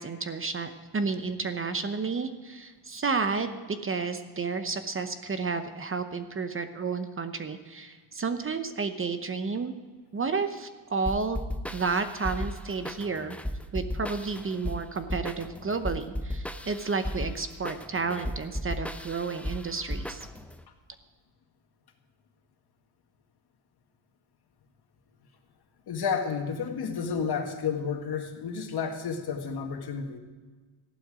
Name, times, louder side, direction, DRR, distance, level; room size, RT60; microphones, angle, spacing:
voice 1, 0.0-9.7 10.1-11.4 11.6-13.4 13.7-20.3, right 4 dB, 30° right, 9 dB, 0.8 m, -31 dB
sound 1, 11.1-20.6, left 1 dB, 5° left, 0.6 m, -35 dB
voice 2, 25.9-30.2, left 6 dB, 55° left, 4 dB, 1.9 m, -31 dB
15.0 x 11.5 x 4.9 m, 1.4 s
cardioid pair, 100°, 46 cm